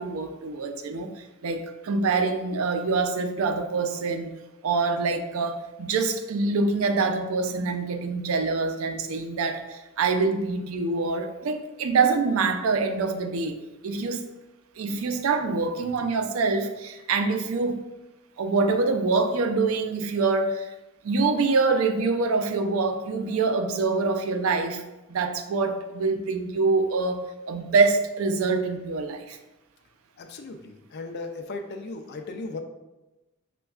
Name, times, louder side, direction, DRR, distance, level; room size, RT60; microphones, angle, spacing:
voice 1, 0.0-4.3 4.6-14.3 14.8-17.9 18.4-20.7 21.0-24.8 25.1-29.4, right 4 dB, 80° right, 6 dB, 0.4 m, -25 dB
voice 2, 30.2-32.6, left 3 dB, 55° left, 6 dB, 0.4 m, -36 dB
6.0 x 2.2 x 2.3 m, 1.0 s
head